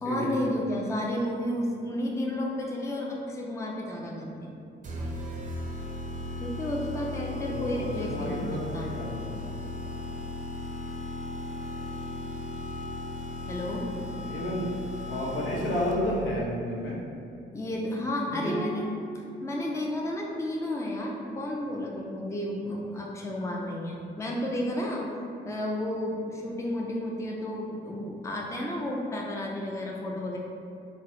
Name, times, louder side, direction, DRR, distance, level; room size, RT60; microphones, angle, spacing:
voice 1, 0.0-4.5 6.4-8.9 13.5-13.9 17.5-18.8 19.4-25.1 25.4-30.4, left 1 dB, 15° left, -1 dB, 0.5 m, -32 dB
sound 1, 4.8-16.2, left 2 dB, 40° right, 0.6 m, -36 dB
voice 2, 7.4-9.3 14.3-14.7 15.1-17.0 18.3-18.8, equal, 80° left, -5 dB, 1.0 m, -31 dB
3.5 x 2.9 x 3.1 m, 2.6 s
cardioid pair, 90°, 20 cm